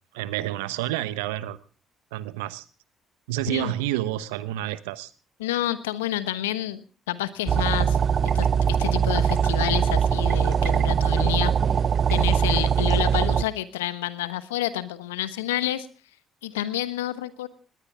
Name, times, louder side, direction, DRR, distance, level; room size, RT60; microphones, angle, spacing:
voice 1, 0.1-1.6 2.1-2.7 3.3-5.1, right 15 dB, 80° right, 16 dB, 1.0 m, -29 dB
voice 2, 5.4-6.8 7.1-8.0 8.3-11.5 12.1-15.9 16.4-17.5, left 14 dB, 85° left, 14 dB, 1.1 m, -29 dB
sound 1, 7.5-13.4, right 7 dB, 50° right, 0.8 m, -22 dB
20.0 x 19.0 x 3.5 m, 0.36 s
hypercardioid pair, 50°, 0 cm